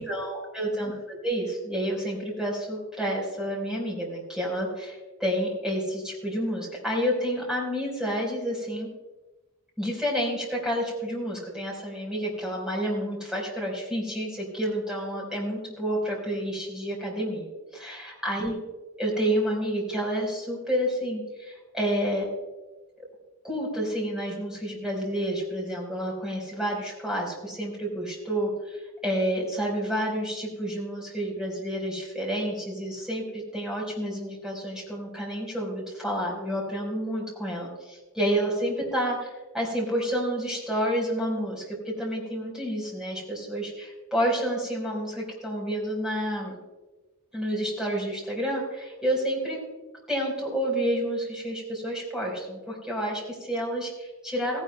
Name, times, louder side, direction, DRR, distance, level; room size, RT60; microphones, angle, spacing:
voice 1, 0.0-8.9 9.8-17.5 17.7-18.6 19.0-22.3 23.0-23.1 23.4-46.6 47.3-49.6 50.1-54.6, equal, 5° right, -3 dB, 4.2 m, -29 dB
17.0 x 17.0 x 2.2 m, 1.2 s
head